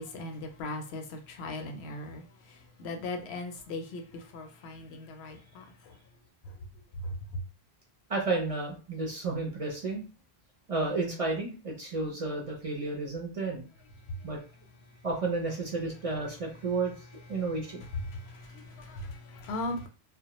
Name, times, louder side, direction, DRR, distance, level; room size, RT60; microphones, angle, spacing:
voice 1, 0.0-2.2 2.8-5.9 7.0-7.4 18.1-19.9, left 2 dB, 80° left, 0.8 m, -38 dB
voice 2, 8.1-10.0 10.7-13.6 14.2-14.4 15.0-17.0 17.3-17.8, right 3 dB, 40° right, 0.6 m, -32 dB
2.2 x 2.1 x 2.9 m
omnidirectional pair, 1.1 m